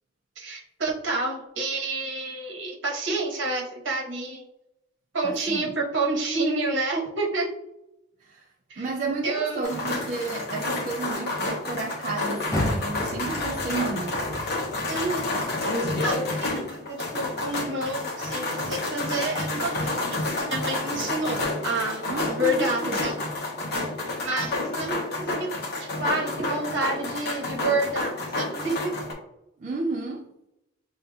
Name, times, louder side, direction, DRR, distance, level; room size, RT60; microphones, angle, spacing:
voice 1, 0.4-4.4 5.1-7.5 8.7-8.9 9.2-9.7 14.9-15.3 16.0-20.1 20.4-23.1 24.2-25.5 25.8-28.9, right 2 dB, 65° right, -2 dB, 1.1 m, -29 dB
voice 2, 5.2-5.7 8.2-8.5 8.8-14.4 22.0-23.1 29.6-30.2, right 3 dB, 35° right, 0 dB, 0.3 m, -32 dB
sound 1, 9.6-29.1, left 2 dB, 50° left, 1.0 m, -30 dB
Car, 12.5-15.7 16.1-17.5 18.0-18.1 18.7-18.8, left 1 dB, 15° left, 0.8 m, -34 dB
6.6 x 2.6 x 2.3 m, 0.87 s
head